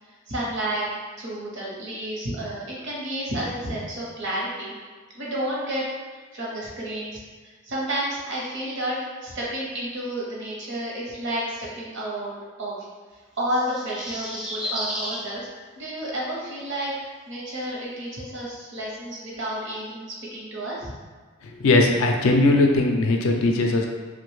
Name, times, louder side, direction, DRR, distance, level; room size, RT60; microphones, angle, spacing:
voice 1, 0.3-0.9 1.2-4.7 5.1-5.8 6.3-7.2 7.6-12.8 13.4-15.5 15.8-20.9, right 1 dB, 55° right, -5 dB, 0.7 m, -31 dB
sound 1, 13.4-15.2 16.7-16.8, equal, 5° right, 0.3 m, -32 dB
voice 2, 21.6-23.9, left 2 dB, 70° left, 2 dB, 0.4 m, -19 dB
2.6 x 2.1 x 3.1 m, 1.4 s
head